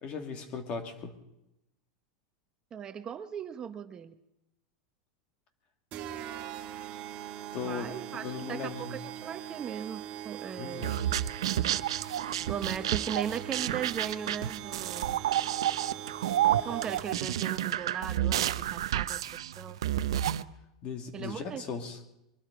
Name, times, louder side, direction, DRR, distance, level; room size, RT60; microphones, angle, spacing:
voice 1, 0.0-1.2 7.5-9.0 10.6-11.0 20.8-22.0, left 5 dB, 45° left, 6 dB, 2.6 m, -38 dB
voice 2, 2.7-4.1 7.6-10.9 12.5-15.2 16.6-19.2 19.6-19.8 21.1-21.6, right 8 dB, 30° right, 9 dB, 1.0 m, -38 dB
sound 1, 5.9-17.3, right 10 dB, 45° right, 1.5 m, -42 dB
sound 2, 10.8-20.4, right 12 dB, 85° right, 0.6 m, -30 dB
23.0 x 12.0 x 5.1 m, 0.88 s
hypercardioid pair, 115°, 3 cm